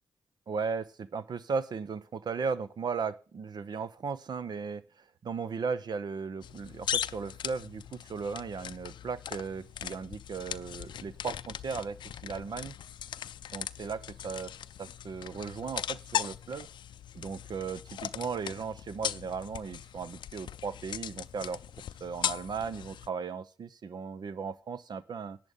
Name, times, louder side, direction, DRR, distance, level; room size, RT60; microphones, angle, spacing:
voice 1, 0.5-12.7 13.5-14.5 14.8-16.7 17.1-21.6 22.0-25.4, right 5 dB, 60° right, 15 dB, 0.9 m, -36 dB
sound 1, 6.4-23.1, left 10 dB, 75° left, 0.4 m, -39 dB
11.0 x 7.8 x 5.5 m, 0.36 s
cardioid pair, 55°, 8 cm